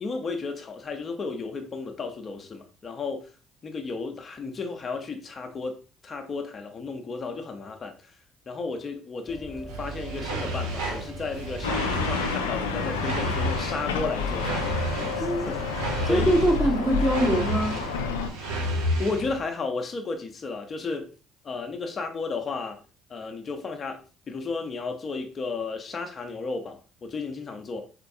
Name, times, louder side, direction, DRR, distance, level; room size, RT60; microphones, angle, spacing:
voice 1, 0.0-3.3 3.6-8.1 8.5-14.6 15.1-15.6 16.1-16.4 19.0-21.1 21.4-22.8 23.1-27.9, left 4 dB, 40° left, 0.6 m, -33 dB
sound 1, 9.3-17.3, right 1 dB, 5° right, 1.1 m, -42 dB
sound 2, 9.7-19.4, right 1 dB, 80° right, 0.6 m, -32 dB
sound 3, 11.6-18.3, left 5 dB, 85° left, 0.3 m, -29 dB
voice 2, 16.0-17.8, right 1 dB, 25° right, 1.2 m, -23 dB
4.2 x 2.2 x 2.6 m
hypercardioid pair, 55°, 0 cm